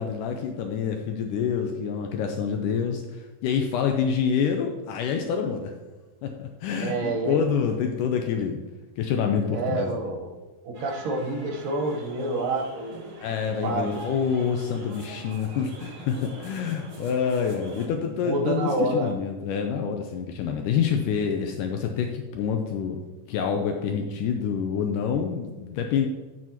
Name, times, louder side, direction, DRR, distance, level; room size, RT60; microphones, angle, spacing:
voice 1, 0.0-5.7 6.2-8.6 9.0-10.1 13.2-23.0 23.3-26.1, left 7 dB, 80° left, 4 dB, 2.1 m, -27 dB
voice 2, 6.8-7.4 9.5-10.3 10.6-13.2 13.6-14.0 15.5-15.6 18.1-19.1, right 2 dB, 75° right, 2 dB, 2.7 m, -28 dB
sound 1, 10.7-17.9, right 2 dB, 55° right, 1.5 m, -44 dB
8.9 x 8.4 x 2.9 m, 1.3 s
omnidirectional pair, 4.0 m